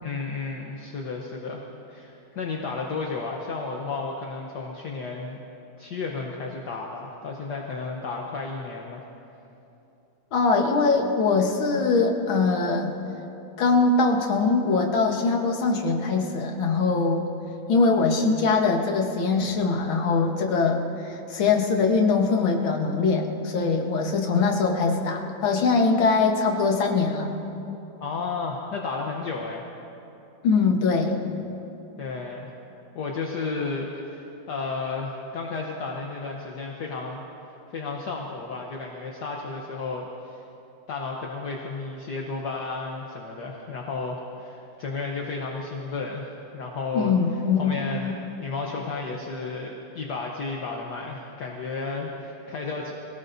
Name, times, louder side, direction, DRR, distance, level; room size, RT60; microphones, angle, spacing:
voice 1, 0.0-5.4 5.8-9.0 28.0-29.6 32.0-32.5 32.9-37.2 37.7-40.4 40.9-47.1 47.6-52.9, left 4 dB, 60° left, -1 dB, 1.5 m, -33 dB
voice 2, 10.3-13.0 13.6-17.3 17.7-27.3 30.4-31.2 46.9-47.8, left 4 dB, 75° left, 2 dB, 2.1 m, -22 dB
25.0 x 18.0 x 2.7 m, 2.9 s
omnidirectional pair, 2.2 m